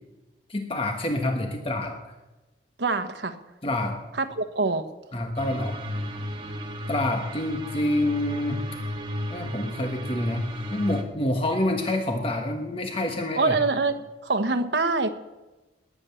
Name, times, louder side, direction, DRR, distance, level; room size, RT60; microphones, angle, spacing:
voice 1, 0.5-2.0 3.6-4.0 5.1-5.8 6.9-8.6 9.3-13.6, left 1 dB, 30° left, 1.4 m, -27 dB
voice 2, 2.8-3.4 4.2-4.9 13.4-15.1, right 3 dB, 80° right, 1.2 m, -25 dB
sound 1, 5.4-11.0, equal, 30° right, 1.8 m, -34 dB
19.5 x 10.0 x 7.0 m
head